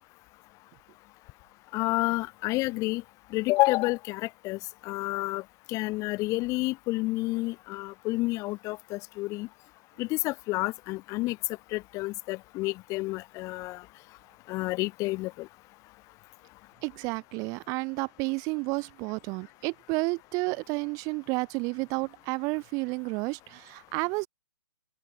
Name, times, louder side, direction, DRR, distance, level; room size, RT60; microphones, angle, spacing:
voice 1, 1.7-3.0 3.3-5.4 5.7-9.5 10.0-11.4 11.7-13.8 14.5-15.5, left 21 dB, 20° left, 1.0 m, -29 dB
voice 2, 16.8-24.3, right 28 dB, 20° right, 0.8 m, -31 dB
open air
hypercardioid pair, 145°, 15 cm